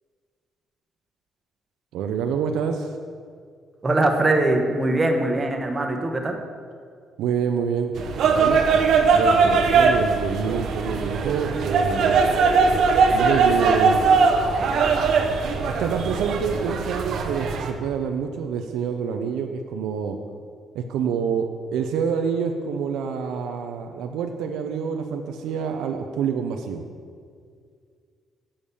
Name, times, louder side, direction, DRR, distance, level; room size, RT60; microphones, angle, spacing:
voice 1, 1.9-2.9 7.2-7.9 8.3-12.6 13.1-14.1 15.6-20.2 20.7-26.8, right 6 dB, 90° right, 5 dB, 0.6 m, -27 dB
voice 2, 3.8-6.4, right 2 dB, 25° right, 4 dB, 1.2 m, -22 dB
sound 1, 8.0-17.7, right 5 dB, 70° right, 0.9 m, -20 dB
7.2 x 6.5 x 6.9 m, 2.1 s
cardioid pair, 90°, 0 cm